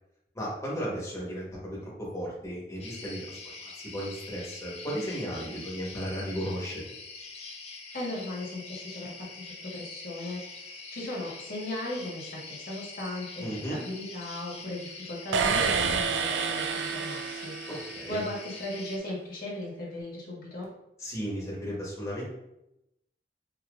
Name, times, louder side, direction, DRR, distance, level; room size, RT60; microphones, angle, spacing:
voice 1, 0.3-6.8 13.4-13.8 17.7-18.2 21.0-22.3, equal, 15° left, -6 dB, 1.2 m, -35 dB
sound 1, 2.8-19.0, left 4 dB, 40° left, 0.6 m, -44 dB
voice 2, 7.9-17.7 18.1-20.6, left 1 dB, 55° left, -4 dB, 1.4 m, -37 dB
sound 2, 15.3-18.2, right 5 dB, 90° right, 0.3 m, -29 dB
4.8 x 2.9 x 2.5 m, 0.86 s
head